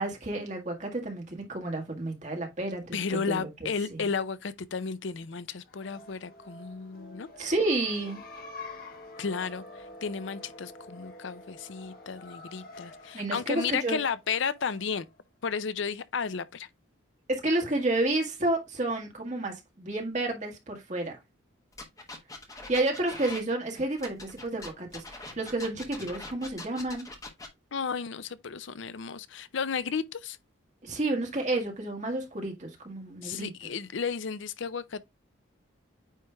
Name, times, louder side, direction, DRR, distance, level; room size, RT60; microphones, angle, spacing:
voice 1, 0.0-4.1 7.4-8.2 13.1-14.0 17.3-21.2 22.7-27.1 30.8-33.7, right 2 dB, 35° right, 1.8 m, -31 dB
voice 2, 2.9-7.3 9.2-9.6 10.0-15.1 15.4-16.7 27.7-30.4 33.2-35.1, left 5 dB, 65° left, 0.5 m, -33 dB
sound 1, 5.6-15.1, left 2 dB, 45° left, 1.1 m, -47 dB
sound 2, 21.7-23.4 24.0-27.5, left 2 dB, 15° left, 1.3 m, -42 dB
9.0 x 3.3 x 3.4 m
head